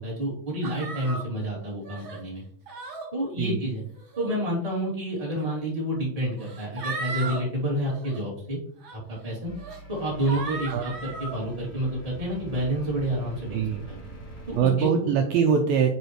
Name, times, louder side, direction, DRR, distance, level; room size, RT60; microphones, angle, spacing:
voice 1, 0.0-2.4 3.1-3.8 4.2-8.6 8.9-9.5 9.9-10.9 11.2-14.0 14.5-14.9, right 1 dB, 10° right, -5 dB, 1.9 m, -29 dB
sound 1, 0.6-1.2 1.8-2.2 2.7-3.1 4.0-4.3 5.4-5.5 6.4-7.4 7.8-8.2 8.8-9.0 9.6-9.8 10.2-11.4, right 4 dB, 65° right, 1.2 m, -36 dB
sound 2, 9.5-14.6, right 2 dB, 65° left, 0.6 m, -43 dB
voice 2, 13.5-13.9 14.6-15.9, right 7 dB, 85° right, 4 dB, 2.2 m, -23 dB
8.1 x 4.7 x 3.1 m, 0.62 s
omnidirectional pair, 4.7 m